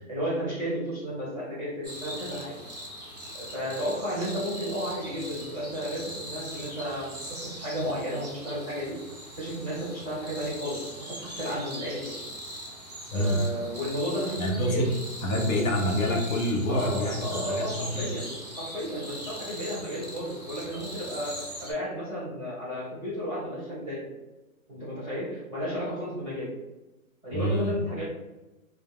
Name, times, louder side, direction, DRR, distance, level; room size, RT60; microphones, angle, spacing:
voice 1, 0.1-2.5 3.3-9.0 9.4-12.2 13.1-14.8 16.7-24.1 24.7-26.5 27.2-28.0, equal, 10° left, -17 dB, 0.7 m, -33 dB
sound 1, 1.8-21.7, equal, 30° right, 0.4 m, -41 dB
voice 2, 13.1-13.5 14.4-15.0 15.2-18.1 27.3-27.8, equal, 75° left, 0 dB, 0.8 m, -27 dB
2.2 x 2.1 x 3.4 m, 1.1 s
hypercardioid pair, 180°, 42 cm